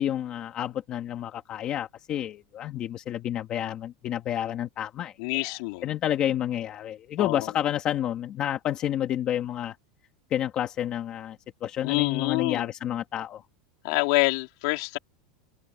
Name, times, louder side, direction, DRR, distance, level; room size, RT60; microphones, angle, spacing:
voice 1, 0.0-5.6 5.8-9.8 10.3-13.4, left 11 dB, 25° left, 1.7 m, -30 dB
voice 2, 5.2-5.9 7.2-7.5 11.8-12.7 13.8-15.0, left 25 dB, 50° left, 3.4 m, -26 dB
open air
supercardioid pair, 170°, 3 cm